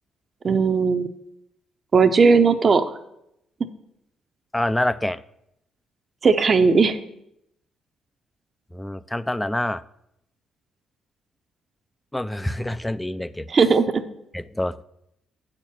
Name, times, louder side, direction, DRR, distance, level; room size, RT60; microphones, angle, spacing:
voice 1, 0.4-1.1 1.9-2.9 6.2-7.0 13.5-14.0, right 5 dB, 40° right, 9 dB, 0.7 m, -17 dB
voice 2, 4.5-5.2 8.7-9.8 12.1-13.5 14.3-14.8, left 1 dB, 10° left, 16 dB, 0.3 m, -26 dB
8.1 x 4.5 x 7.2 m, 0.79 s
cardioid pair, 90°, 0 cm